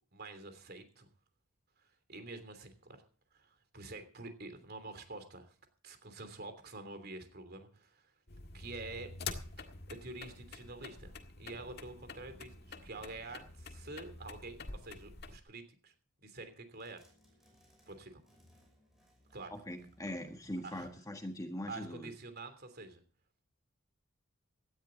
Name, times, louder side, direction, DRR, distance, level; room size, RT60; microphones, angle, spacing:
voice 1, 0.1-1.1 1.8-3.0 3.3-5.5 5.8-8.1 8.5-9.1 9.6-15.9 16.2-17.0 17.9-18.2 19.3-19.5 20.6-20.9 21.7-23.0, right 3 dB, 50° right, 9 dB, 3.0 m, -47 dB
sound 1, 8.3-15.4, left 4 dB, 50° left, 1.7 m, -47 dB
sound 2, 16.7-21.7, equal, ahead, 6.0 m, -67 dB
voice 2, 19.5-22.1, left 1 dB, 15° left, 5 dB, 1.5 m, -41 dB
17.5 x 13.0 x 3.9 m, 0.39 s
head